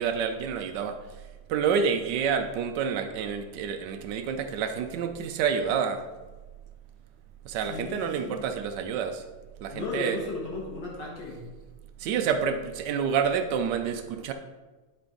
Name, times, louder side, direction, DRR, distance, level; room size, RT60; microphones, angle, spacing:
voice 1, 0.0-6.1 7.4-9.2 9.6-10.2 12.0-14.3, right 7 dB, 75° right, 7 dB, 1.0 m, -28 dB
voice 2, 7.7-8.4 9.7-11.5, left 3 dB, 55° left, -3 dB, 2.0 m, -35 dB
10.5 x 4.4 x 3.8 m, 1.2 s
omnidirectional pair, 2.4 m